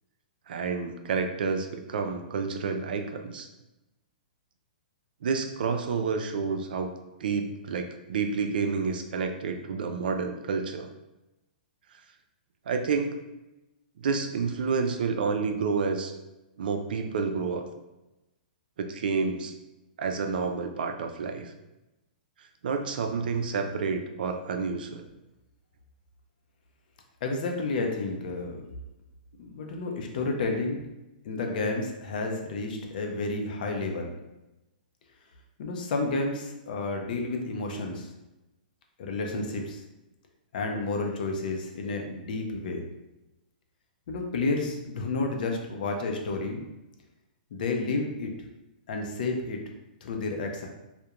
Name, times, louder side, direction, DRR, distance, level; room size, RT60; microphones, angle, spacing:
voice 1, 0.5-3.5 5.2-6.9 7.2-10.9 12.7-13.2 14.0-16.1 16.6-17.6 18.8-19.5 20.0-21.5 22.4-25.1, right 5 dB, 75° right, 5 dB, 0.3 m, -29 dB
voice 2, 27.2-28.6 29.4-30.8 31.2-34.1 35.6-38.1 39.0-39.8 40.5-42.8 44.1-46.6 47.5-48.3 48.9-49.6 50.0-50.7, left 3 dB, 60° left, 2 dB, 0.5 m, -31 dB
2.4 x 2.1 x 2.8 m, 0.99 s
hypercardioid pair, 140°, 5 cm